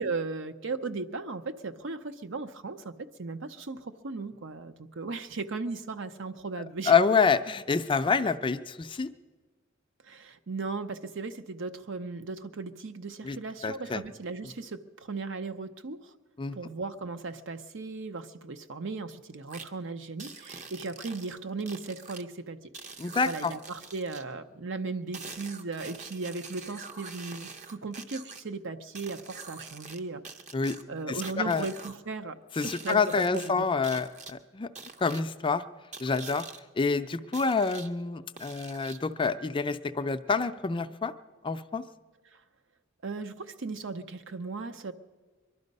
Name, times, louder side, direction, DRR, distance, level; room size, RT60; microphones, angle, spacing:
voice 1, 0.0-7.0 10.0-16.1 16.5-22.7 23.2-30.2 30.9-32.4 32.6-33.6 43.0-44.9, right 3 dB, 65° right, 10 dB, 0.7 m, -37 dB
voice 2, 6.9-9.1 13.2-13.4 13.6-14.0 16.4-16.6 23.0-23.5 30.5-30.8 31.1-31.2 31.4-31.7 32.6-34.7 35.0-35.6 36.0-36.4 36.8-41.1 41.4-41.8, left 5 dB, 25° left, 10 dB, 0.4 m, -27 dB
sound 1, 19.5-19.7 20.2-22.2 22.7-24.2 25.1-28.4 28.9-30.0 30.2-32.0 32.5-33.5 33.8-34.3 34.7-35.2 35.9-36.6 37.3-37.9 38.4-39.1, right 4 dB, 40° right, 0.8 m, -45 dB
22.5 x 12.0 x 5.3 m, 1.4 s
head